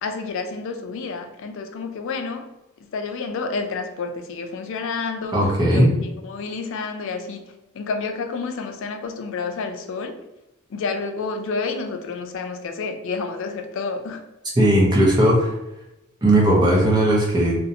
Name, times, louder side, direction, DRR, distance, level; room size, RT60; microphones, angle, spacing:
voice 1, 0.0-2.5 2.9-5.4 5.7-7.4 7.7-10.2 10.7-14.2, left 4 dB, 60° left, 6 dB, 0.3 m, -29 dB
voice 2, 5.3-5.9 14.6-15.5 16.2-17.5, right 1 dB, 20° right, -3 dB, 0.5 m, -17 dB
2.6 x 2.0 x 2.6 m, 0.94 s
head